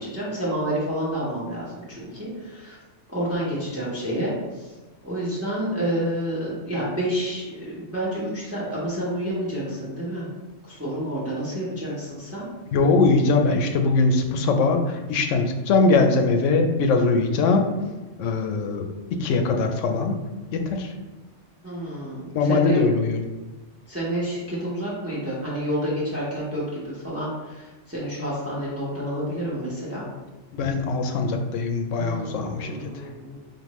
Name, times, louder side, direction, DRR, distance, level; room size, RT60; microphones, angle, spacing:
voice 1, 0.0-2.8 3.1-4.7 5.0-10.3 10.7-12.5 21.6-22.8 23.9-30.1 32.0-33.4, equal, 15° right, -8 dB, 0.9 m, -29 dB
voice 2, 12.7-17.7 18.2-20.2 20.5-20.9 22.3-23.2 30.5-33.1, left 3 dB, 85° left, 4 dB, 0.9 m, -21 dB
5.2 x 2.5 x 3.0 m, 1.2 s
omnidirectional pair, 1.2 m